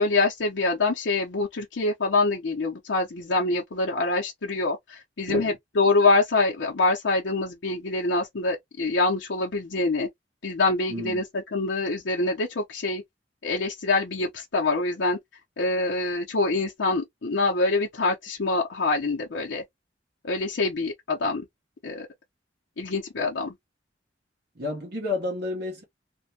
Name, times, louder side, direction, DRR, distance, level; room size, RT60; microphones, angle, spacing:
voice 1, 0.0-10.1 10.4-13.0 13.4-15.2 15.6-19.6 20.2-21.5 21.8-22.1 22.8-23.5, left 3 dB, 75° left, 0.7 m, -25 dB
voice 2, 10.9-11.2 24.6-25.8, left 2 dB, 60° right, 0.9 m, -30 dB
2.6 x 2.2 x 2.7 m
head